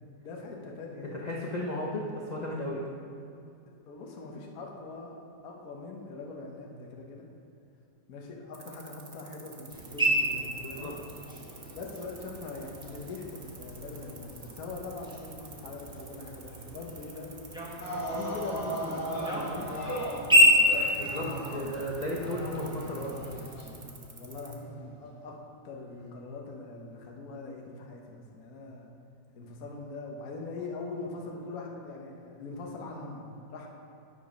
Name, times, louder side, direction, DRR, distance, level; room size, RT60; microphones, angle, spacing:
voice 1, 0.2-1.2 3.9-5.2 5.4-7.3 8.1-10.9 11.7-17.4 18.1-20.1 21.0-21.5 24.2-28.9 29.3-33.2 33.5-33.7, left 3 dB, 55° left, 0 dB, 1.3 m, -42 dB
voice 2, 1.2-2.8 10.6-11.0 21.0-23.5, left 1 dB, 75° left, -3 dB, 0.4 m, -35 dB
sound 1, 8.5-24.6, right 5 dB, 85° right, 0.4 m, -50 dB
sound 2, 9.7-23.8, left 1 dB, 5° right, 0.8 m, -30 dB
sound 3, 17.8-25.0 26.0-26.1, right 1 dB, 40° left, 2.2 m, -38 dB
9.2 x 5.2 x 5.1 m, 2.6 s
omnidirectional pair, 2.0 m